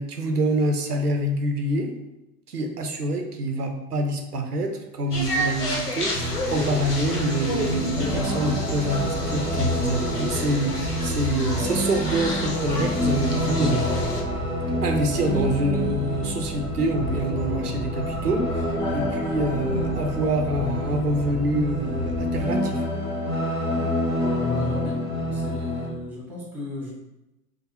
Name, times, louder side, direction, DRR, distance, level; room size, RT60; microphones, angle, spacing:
voice 1, 0.0-1.9 2.5-14.1 14.8-22.8, right 1 dB, 90° right, 4 dB, 0.5 m, -26 dB
sound 1, 5.1-14.2, left 1 dB, 80° left, 0.8 m, -31 dB
sound 2, 6.1-25.9, left 1 dB, 10° left, 0.6 m, -28 dB
sound 3, 6.2-22.4, right 2 dB, 25° right, 0.8 m, -36 dB
voice 2, 24.4-25.0 25.3-26.9, left 2 dB, 5° right, -4 dB, 1.2 m, -36 dB
4.8 x 2.0 x 2.7 m, 0.94 s
figure-of-eight pair, 90°, 45 cm